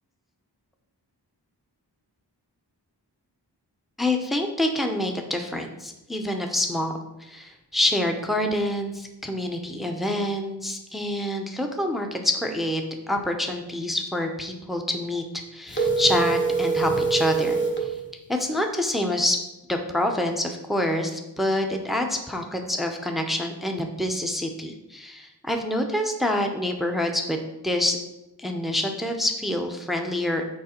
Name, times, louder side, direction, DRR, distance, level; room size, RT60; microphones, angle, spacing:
voice 1, 4.0-15.2 15.5-17.9 18.3-19.4 19.7-27.4 27.6-28.0 28.4-30.4, left 1 dB, ahead, 3 dB, 0.8 m, -27 dB
sound 1, 15.7-17.8, right 4 dB, 25° left, 1.1 m, -24 dB
6.4 x 4.7 x 4.4 m, 0.96 s
wide cardioid pair, 55°, 42 cm